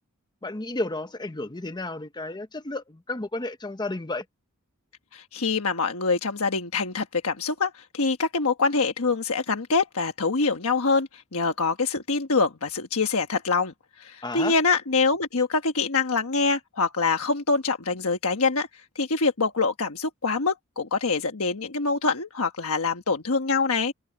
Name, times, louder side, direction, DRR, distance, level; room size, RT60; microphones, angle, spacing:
voice 1, 0.4-4.2 14.2-14.5, left 2 dB, 20° left, 0.9 m, -32 dB
voice 2, 5.1-18.7 18.9-23.9, left 4 dB, 75° left, 1.3 m, -25 dB
open air
head